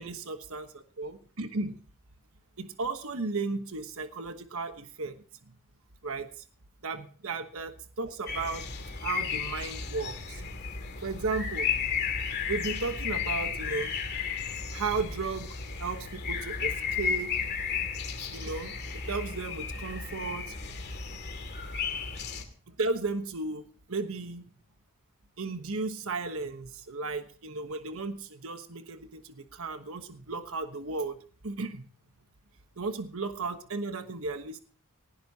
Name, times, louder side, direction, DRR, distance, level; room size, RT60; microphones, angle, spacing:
voice 1, 0.0-1.8 2.6-5.1 5.5-5.6 6.0-6.3 6.8-8.6 9.0-10.4 11.0-11.7 12.5-13.9 14.7-15.5 15.8-17.3 18.2-20.5 22.7-24.5 25.4-31.2 31.4-31.8 32.8-34.6, right 3 dB, 65° right, 8 dB, 1.2 m, -35 dB
sound 1, 8.3-22.4, left 6 dB, 50° left, 2.4 m, -34 dB
19.0 x 16.5 x 2.9 m, 0.42 s
head